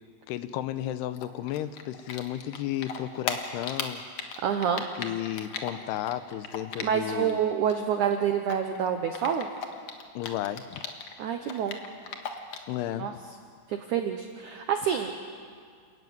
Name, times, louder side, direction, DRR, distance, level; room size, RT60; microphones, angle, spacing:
voice 1, 0.3-4.0 4.3-4.4 5.0-7.4 10.2-10.8 12.7-13.2, left 12 dB, 80° left, 12 dB, 2.7 m, -33 dB
Typing, 1.1-7.3 7.6-11.1 11.4-12.7, left 6 dB, 60° left, 1.8 m, -36 dB
voice 2, 4.4-4.8 6.8-9.5 11.2-11.8 13.0-13.1 13.7-15.1, right 8 dB, 80° right, 5 dB, 1.7 m, -27 dB
29.5 x 14.5 x 9.4 m, 2.1 s
omnidirectional pair, 4.9 m